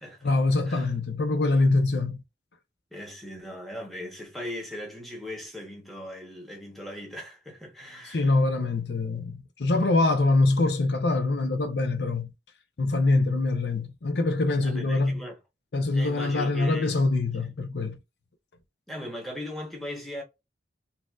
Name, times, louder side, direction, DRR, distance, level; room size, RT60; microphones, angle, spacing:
voice 1, 0.2-2.2 8.0-12.3 12.8-15.2 15.7-18.0, left 2 dB, 70° left, 0.6 m, -24 dB
voice 2, 2.9-8.3 14.6-15.4 15.9-16.9 17.4-17.5 18.9-20.2, left 1 dB, ahead, 1.0 m, -38 dB
4.0 x 2.5 x 2.3 m
head